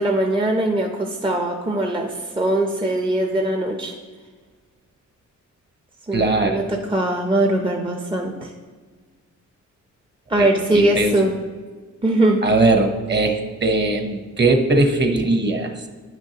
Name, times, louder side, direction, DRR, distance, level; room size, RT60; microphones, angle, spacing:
voice 1, 0.0-3.9 6.1-8.5 10.3-11.3 12.0-12.4, right 1 dB, 15° right, 2 dB, 0.6 m, -21 dB
voice 2, 6.1-6.6 10.4-10.5 10.7-11.1 12.4-15.7, right 2 dB, 35° right, 4 dB, 0.9 m, -19 dB
10.0 x 6.1 x 2.9 m, 1.5 s
cardioid pair, 105°, 31 cm